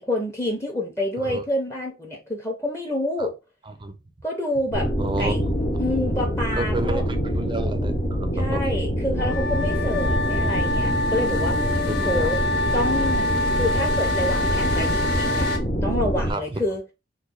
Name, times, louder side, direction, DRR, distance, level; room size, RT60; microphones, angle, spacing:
voice 1, 0.0-3.3 4.2-4.9 5.2-7.0 8.3-12.4 12.7-13.3 13.6-15.5 15.8-16.8, left 1 dB, 15° left, 0.7 m, -28 dB
sound 1, 4.7-16.3, equal, 45° left, 0.9 m, -25 dB
voice 2, 5.0-5.4 5.7-5.8 6.6-8.9 11.9-12.1 16.3-16.4, right 2 dB, 25° right, 0.5 m, -30 dB
sound 2, 9.2-15.6, left 2 dB, 75° left, 1.0 m, -26 dB
3.1 x 2.2 x 3.8 m
head